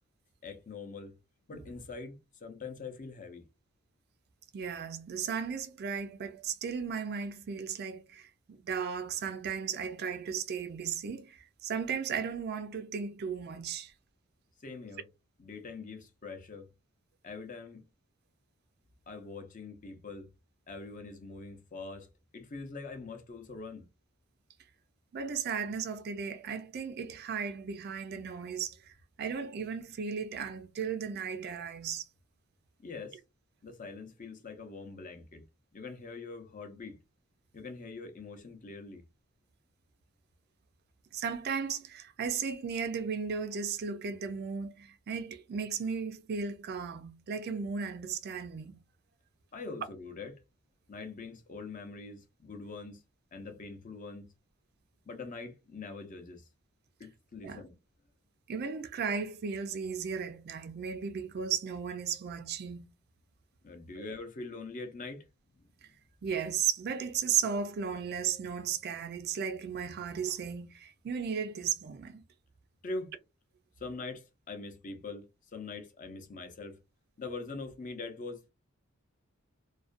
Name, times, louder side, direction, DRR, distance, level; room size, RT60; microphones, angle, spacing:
voice 1, 0.4-1.1 1.5-3.4 14.6-15.0 15.4-16.7 17.2-17.8 19.1-20.3 20.7-22.1 22.3-23.9 32.8-33.2 33.6-35.4 35.7-37.0 37.5-39.0 49.5-50.4 50.9-53.0 53.3-54.3 55.1-56.5 57.0-57.7 63.6-65.2 72.8-73.1 73.8-75.2 75.5-76.8 77.2-78.4, left 3 dB, 40° left, 0.5 m, -43 dB
voice 2, 4.5-13.9 25.1-28.8 29.2-32.0 41.1-48.8 57.4-57.6 58.5-62.9 64.0-64.1 66.2-72.2, right 6 dB, 50° right, 0.4 m, -35 dB
2.4 x 2.1 x 2.4 m
head